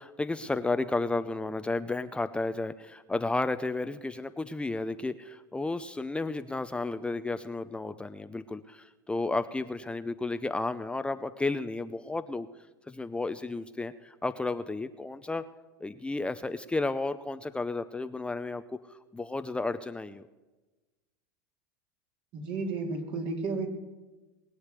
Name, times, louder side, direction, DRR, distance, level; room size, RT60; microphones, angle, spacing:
voice 1, 0.0-12.5 12.9-15.4 15.8-18.6 18.9-20.2, left 3 dB, 10° left, 10 dB, 0.6 m, -32 dB
voice 2, 22.3-23.7, right 3 dB, 55° right, 3 dB, 3.2 m, -32 dB
21.0 x 8.3 x 8.2 m, 1.2 s
supercardioid pair, 105°, 11 cm